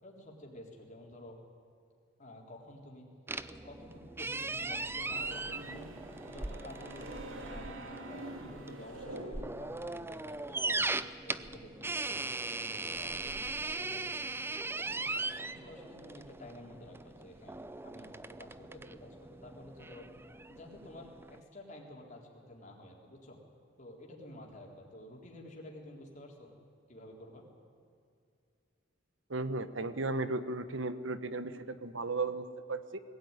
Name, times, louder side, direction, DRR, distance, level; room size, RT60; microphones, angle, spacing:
voice 1, 0.0-1.4 2.2-3.1 3.5-5.9 6.3-10.9 11.2-14.3 14.7-15.0 15.4-17.5 17.8-20.1 20.5-23.4 23.8-26.6 26.9-27.4, left 1 dB, 40° left, -1 dB, 3.7 m, -51 dB
sound 1, 3.3-21.4, right 3 dB, 10° right, 0.5 m, -39 dB
sound 2, 4.6-9.8, right 1 dB, 85° right, 2.8 m, -46 dB
voice 2, 29.3-33.0, right 3 dB, 70° right, 12 dB, 1.2 m, -35 dB
21.0 x 16.5 x 9.7 m, 2.4 s
head